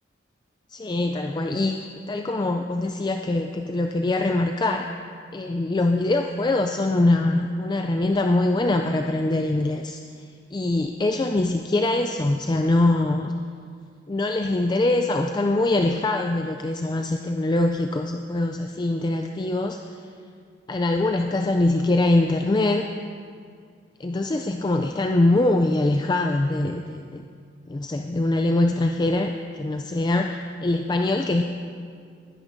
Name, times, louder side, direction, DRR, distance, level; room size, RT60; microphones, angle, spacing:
voice 1, 0.7-1.8 2.1-4.9 5.3-10.0 10.5-13.3 14.1-19.8 20.7-22.8 24.0-27.3 27.7-31.4, left 2 dB, 25° left, 4 dB, 0.3 m, -23 dB
19.5 x 10.5 x 2.7 m, 2.2 s
head